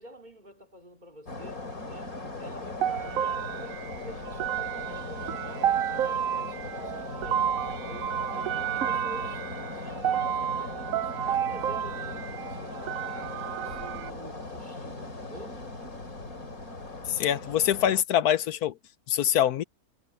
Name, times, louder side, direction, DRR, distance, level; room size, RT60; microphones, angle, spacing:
voice 1, 0.0-15.6, right 1 dB, 30° right, 3.6 m, -48 dB
sound 1, 1.3-18.0, left 2 dB, 70° left, 4.2 m, -39 dB
sound 2, 2.8-14.1, right 10 dB, 70° right, 1.0 m, -31 dB
voice 2, 17.1-18.8 19.1-19.6, left 10 dB, 90° left, 1.3 m, -24 dB
omnidirectional pair, 1.6 m